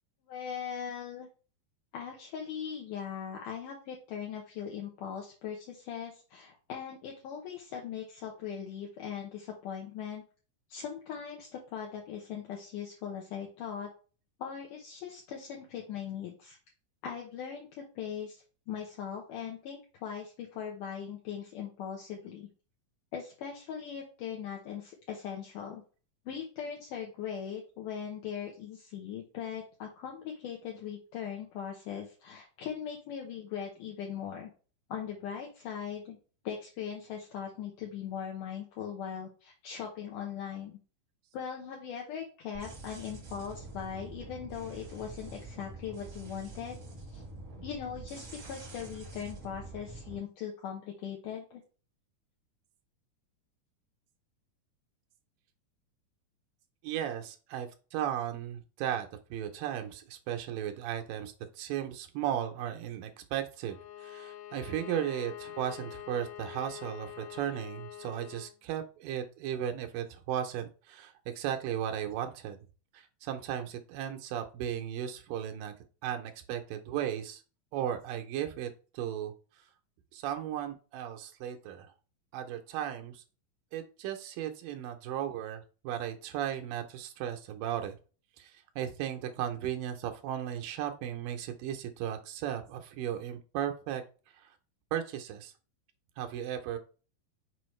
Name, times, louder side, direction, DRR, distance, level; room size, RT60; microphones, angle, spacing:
voice 1, 0.3-1.3 1.9-10.2 10.7-13.9 14.4-16.6 17.0-22.5 23.1-25.8 26.3-34.5 34.9-36.2 36.4-40.8 41.3-46.8 47.1-47.2 47.6-51.6, left 8 dB, 70° left, 0 dB, 2.3 m, -40 dB
sound 1, 42.5-50.2, right 2 dB, 50° right, 0.8 m, -46 dB
voice 2, 56.8-72.6 72.9-75.7 76.0-77.4 77.7-79.3 80.1-81.9 82.3-83.2 83.7-88.0 88.4-94.0 94.9-95.5 96.2-96.8, right 10 dB, 80° right, 5 dB, 2.3 m, -36 dB
Bowed string instrument, 63.6-68.6, left 12 dB, 90° left, 2.4 m, -45 dB
6.2 x 4.9 x 3.1 m, 0.36 s
omnidirectional pair, 4.1 m